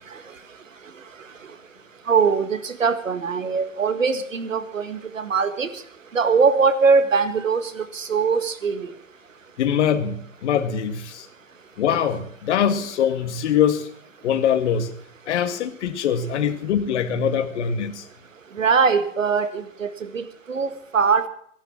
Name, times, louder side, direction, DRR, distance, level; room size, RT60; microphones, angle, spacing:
voice 1, 2.1-5.8 6.1-8.9 18.5-21.3, right 5 dB, 85° right, 10 dB, 1.9 m, -21 dB
voice 2, 9.6-11.3 11.8-13.9 14.2-14.9 15.3-18.0, left 8 dB, 65° left, 10 dB, 2.0 m, -23 dB
15.5 x 12.0 x 7.3 m, 0.65 s
figure-of-eight pair, 105°, 38 cm